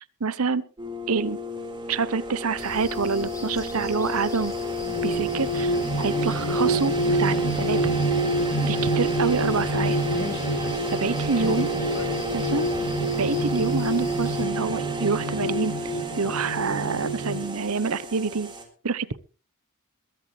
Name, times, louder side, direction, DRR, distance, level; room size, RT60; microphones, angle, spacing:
voice 1, 0.2-0.6 1.1-1.4 1.9-4.5 5.0-7.8 8.6-10.0 11.0-11.7 12.3-12.7 13.2-15.7 16.2-18.5 18.8-19.2, right 5 dB, 80° right, 17 dB, 0.9 m, -27 dB
sound 1, 0.8-18.6, left 2 dB, 20° right, 3.8 m, -32 dB
sound 2, 2.6-14.4, left 1 dB, 15° left, 3.7 m, -43 dB
sound 3, 4.7-17.5, right 2 dB, 80° left, 2.0 m, -27 dB
voice 2, 10.1-12.2 13.5-13.7, left 2 dB, 55° left, 8 dB, 2.1 m, -36 dB
21.5 x 12.0 x 3.3 m, 0.36 s
head